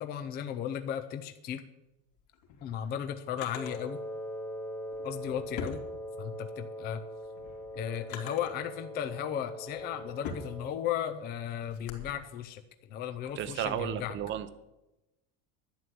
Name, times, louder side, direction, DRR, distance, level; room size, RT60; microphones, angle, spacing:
voice 1, 0.0-1.6 2.6-4.0 5.0-5.8 6.2-7.0 7.8-12.6 12.9-14.2, left 9 dB, 25° left, 8 dB, 0.5 m, -35 dB
Drawer open or close, 2.2-3.8 4.9-6.5 6.9-8.6 9.3-12.1, left 6 dB, 70° left, 2.8 m, -44 dB
Wind instrument woodwind instrument, 3.5-10.9, equal, 5° left, 0.9 m, -41 dB
voice 2, 13.4-14.5, right 10 dB, 30° right, 12 dB, 0.8 m, -33 dB
11.5 x 10.0 x 7.6 m, 0.97 s
cardioid pair, 170°, 41 cm